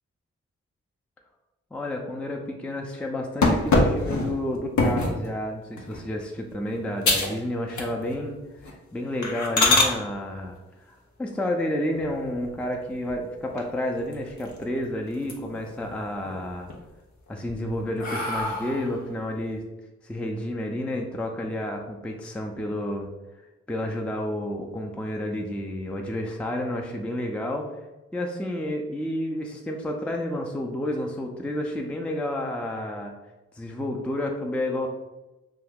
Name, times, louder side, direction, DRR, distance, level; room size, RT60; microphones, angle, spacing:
voice 1, 1.7-8.4 8.9-10.6 10.9-16.7 17.3-19.6 20.0-23.1 23.7-27.7 28.1-33.1 33.6-34.9, left 1 dB, 5° left, 1 dB, 0.4 m, -30 dB
sound 1, 3.4-5.2 5.8-6.1 6.5-6.6 7.0-7.4 7.7-8.2 8.6-8.7 9.2-9.9 11.9-12.6 13.1-13.2 13.6-13.7 14.0-14.8 15.1-15.7 16.1-16.7 17.3-19.0, left 2 dB, 80° left, 0.6 m, -24 dB
2.6 x 2.3 x 3.5 m, 1.1 s
cardioid pair, 40°, 29 cm